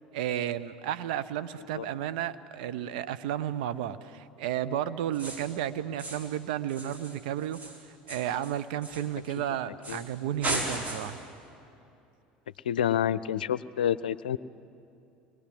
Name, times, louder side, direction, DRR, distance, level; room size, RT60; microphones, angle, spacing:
voice 1, 0.1-7.6 7.9-11.2, right 11 dB, 70° right, 12 dB, 0.9 m, -32 dB
sound 1, 5.1-5.6 6.0-6.4 6.7-9.4 9.8-10.1 10.4-11.3, right 1 dB, 35° right, 4.7 m, -36 dB
voice 2, 12.6-14.4, left 9 dB, 80° left, 18 dB, 0.5 m, -28 dB
27.5 x 21.5 x 7.7 m, 2.7 s
hypercardioid pair, 70°, 5 cm